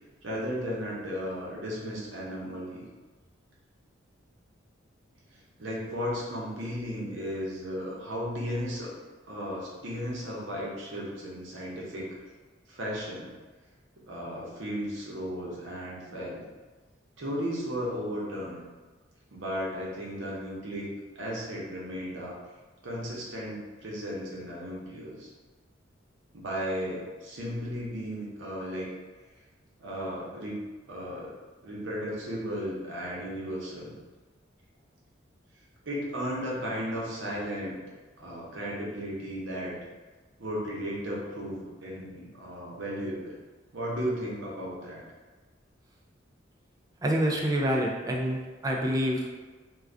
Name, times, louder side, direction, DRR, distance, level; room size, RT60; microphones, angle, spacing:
voice 1, 0.2-2.8 5.3-8.9 9.3-12.1 12.7-13.3 14.1-16.4 17.2-18.6 19.3-22.4 22.8-25.3 26.3-28.9 29.8-30.6 30.9-31.3 31.6-33.9 35.8-37.8 38.2-39.7 40.4-43.4 43.7-45.0, equal, 80° right, -5 dB, 0.8 m, -35 dB
voice 2, 47.0-49.3, equal, 20° right, -1 dB, 0.3 m, -27 dB
2.5 x 2.3 x 3.3 m, 1.3 s
head